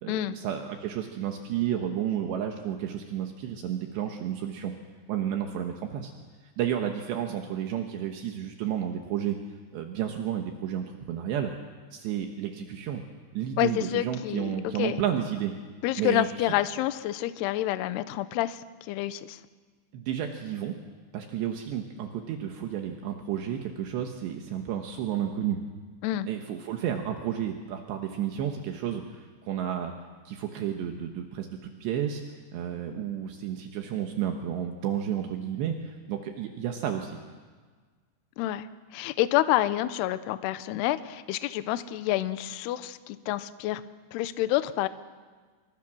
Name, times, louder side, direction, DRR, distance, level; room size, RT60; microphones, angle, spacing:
voice 1, 0.0-4.7 5.1-6.1 6.6-9.4 9.7-11.5 11.9-13.0 13.4-15.6 16.0-16.6 19.9-20.8 21.1-25.6 26.3-29.9 30.3-32.2 32.5-37.2, right 10 dB, 75° right, 4 dB, 3.3 m, -31 dB
voice 2, 13.6-15.0 15.8-19.4 26.0-26.3 38.4-38.7 38.9-43.8 44.1-44.9, left 14 dB, 75° left, 12 dB, 2.6 m, -28 dB
28.0 x 24.0 x 6.2 m, 1.5 s
omnidirectional pair, 5.3 m